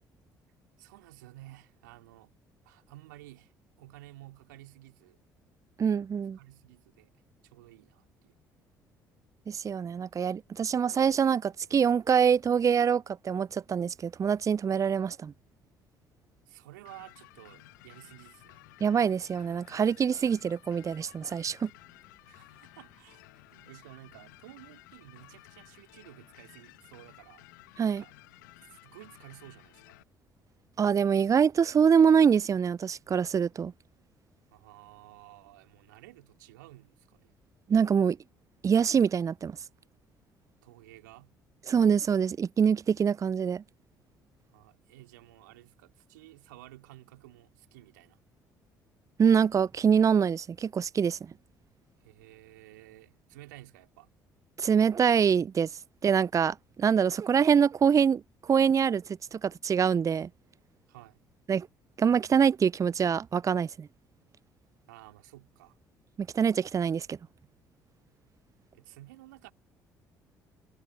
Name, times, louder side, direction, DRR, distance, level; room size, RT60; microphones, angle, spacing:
voice 1, 0.8-2.3 2.6-5.2 6.4-8.4 16.5-18.7 22.2-27.5 27.8-28.1 28.7-30.0 34.5-37.3 40.6-41.4 44.5-48.2 52.0-54.1 60.9-61.2 64.9-65.8 68.7-69.5, right 18 dB, 75° right, 3.3 m, -53 dB
voice 2, 5.8-6.4 9.5-15.3 18.8-21.7 27.8-28.0 30.8-33.7 37.7-38.2 38.6-39.6 41.7-43.6 49.2-51.2 54.6-55.7 56.0-59.0 59.3-60.3 61.5-61.7 62.0-63.9 66.2-67.2, right 7 dB, 30° right, 0.5 m, -25 dB
sound 1, 16.8-30.0, left 20 dB, 75° left, 1.8 m, -55 dB
figure-of-eight pair, 50°, 10 cm